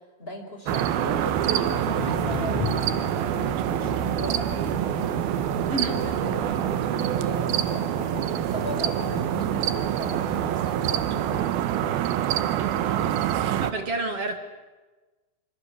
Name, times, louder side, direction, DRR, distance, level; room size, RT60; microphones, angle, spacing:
voice 1, 0.2-5.3 5.9-12.3 12.8-13.5, left 1 dB, 15° left, 4 dB, 5.0 m, -39 dB
sound 1, 0.7-11.3, left 2 dB, 40° left, 5.7 m, -40 dB
sound 2, 0.7-13.7, right 11 dB, 70° right, 2.9 m, -26 dB
Thunder, 1.8-10.6, left 8 dB, 60° left, 1.7 m, -39 dB
voice 2, 5.7-6.0 13.4-14.4, right 2 dB, 45° right, 7 dB, 2.5 m, -29 dB
26.0 x 25.0 x 8.4 m, 1.2 s
omnidirectional pair, 4.7 m